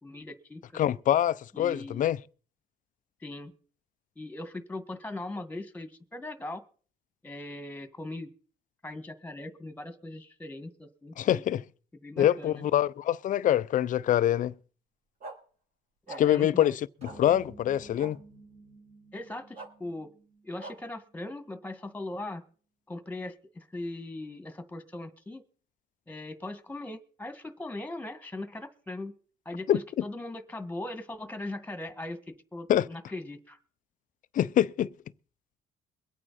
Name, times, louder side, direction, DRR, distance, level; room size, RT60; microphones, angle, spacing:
voice 1, 0.0-0.8 1.5-2.1 3.2-3.5 4.2-6.6 7.2-8.3 8.8-11.4 12.0-12.7 16.1-16.7 19.1-20.1 20.4-22.4 22.9-25.4 26.1-29.2 29.5-33.6, left 2 dB, 10° left, 1.9 m, -40 dB
voice 2, 0.7-2.2 11.2-11.6 12.2-14.5 16.2-18.2 29.7-30.0 32.7-32.9 34.3-34.9, left 11 dB, 50° left, 0.6 m, -25 dB
sound 1, 15.2-15.4 16.1-16.2 17.0-17.2 18.0-18.1 19.5-19.7 20.6-20.7, right 3 dB, 60° right, 4.2 m, -41 dB
sound 2, 17.0-21.6, right 2 dB, 40° right, 4.6 m, -53 dB
23.0 x 8.8 x 4.3 m
cardioid pair, 110°, 17 cm